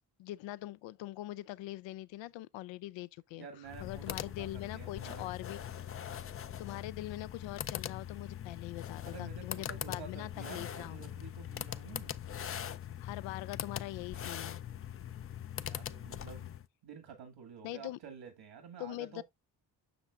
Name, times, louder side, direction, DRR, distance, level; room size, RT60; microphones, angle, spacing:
voice 1, 0.2-3.5 3.8-5.9 6.6-11.1 13.0-14.6 17.6-18.0 18.8-19.2, left 16 dB, 80° left, 0.5 m, -43 dB
voice 2, 3.3-5.2 9.1-12.2 15.6-16.5 16.8-19.2, right 6 dB, 75° right, 1.9 m, -50 dB
sound 1, 3.6-16.7, left 9 dB, 30° left, 0.4 m, -42 dB
7.8 x 6.1 x 2.4 m
supercardioid pair, 65°, 45 cm